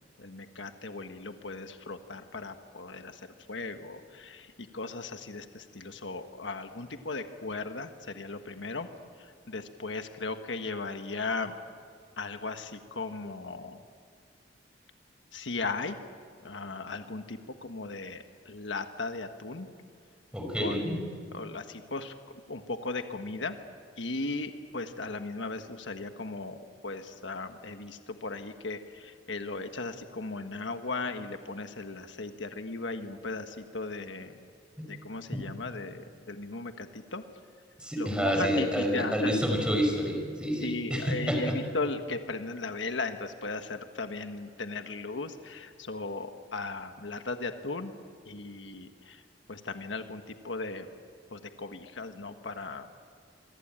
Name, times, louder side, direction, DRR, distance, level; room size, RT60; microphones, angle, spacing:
voice 1, 0.2-3.2 3.5-8.9 9.2-11.5 12.2-13.8 15.3-16.0 16.4-19.7 20.6-22.1 22.5-23.6 24.0-26.6 26.8-34.3 34.9-37.2 38.0-39.3 40.6-48.0 48.3-49.2 49.5-50.9 51.3-52.9, left 3 dB, 90° left, 7 dB, 1.4 m, -37 dB
voice 2, 20.3-21.0 34.8-34.9 37.8-41.6, equal, 5° right, 2 dB, 5.6 m, -28 dB
27.0 x 24.5 x 8.9 m, 2.1 s
head